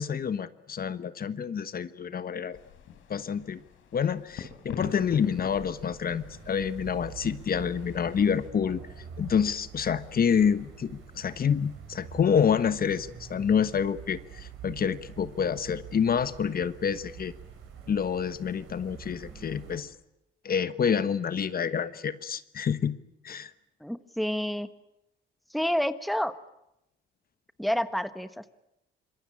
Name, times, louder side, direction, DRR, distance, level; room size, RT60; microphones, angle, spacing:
voice 1, 0.0-2.6 3.1-3.6 3.9-8.8 9.2-17.3 17.9-19.9 20.4-22.9 23.2-23.5, left 7 dB, 50° left, 13 dB, 1.3 m, -28 dB
sound 1, 2.5-8.5, left 7 dB, 85° left, 4.5 m, -45 dB
sound 2, 4.9-19.8, right 7 dB, 85° right, 7.8 m, -46 dB
voice 2, 23.8-24.7 25.5-26.3 27.6-28.5, equal, ahead, 12 dB, 1.4 m, -29 dB
26.0 x 22.5 x 8.8 m, 0.86 s
cardioid pair, 90°, 20 cm